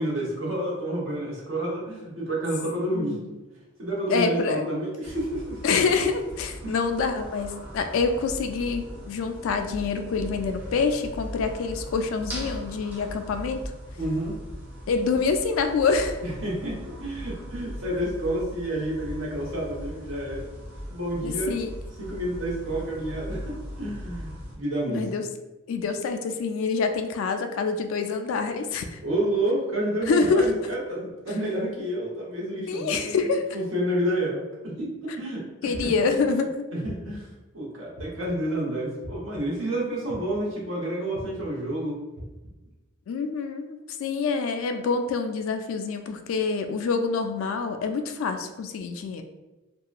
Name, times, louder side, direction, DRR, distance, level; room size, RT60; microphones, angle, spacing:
voice 1, 0.0-3.2 3.8-5.6 6.6-6.7 14.0-14.3 16.2-20.4 20.9-21.5 22.0-25.0 29.0-33.1 33.5-35.9 36.7-37.3 37.5-42.0, right 1 dB, 75° right, -5 dB, 1.0 m, -29 dB
voice 2, 2.9-3.3 4.1-4.7 5.6-13.6 14.9-16.2 21.2-21.7 24.9-25.3 25.7-29.0 30.1-30.5 32.7-33.5 35.6-36.7 43.1-49.2, left 4 dB, 75° left, 8 dB, 0.3 m, -26 dB
sound 1, 5.0-24.6, equal, 10° right, 0.6 m, -39 dB
sound 2, 35.7-36.2 36.8-37.3 38.0-38.4 39.0-39.4 40.1-40.5 41.1-41.5 42.2-42.5, equal, 50° right, 0.5 m, -40 dB
2.7 x 2.2 x 2.4 m, 1.1 s
head